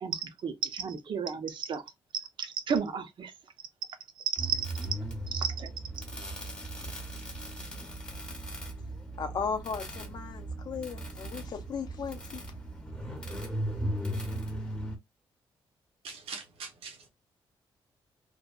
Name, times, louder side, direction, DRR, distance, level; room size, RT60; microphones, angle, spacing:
voice 1, 0.0-1.8 2.4-3.3 4.4-4.7 5.3-5.7, right 6 dB, 55° right, 0.5 m, -32 dB
sound 1, 4.4-15.0, right 1 dB, 10° left, 0.6 m, -37 dB
voice 2, 9.2-12.4, left 6 dB, 45° left, 0.4 m, -36 dB
voice 3, 16.0-17.1, right 5 dB, 80° right, 0.8 m, -42 dB
2.7 x 2.1 x 2.3 m
cardioid pair, 130°, 9 cm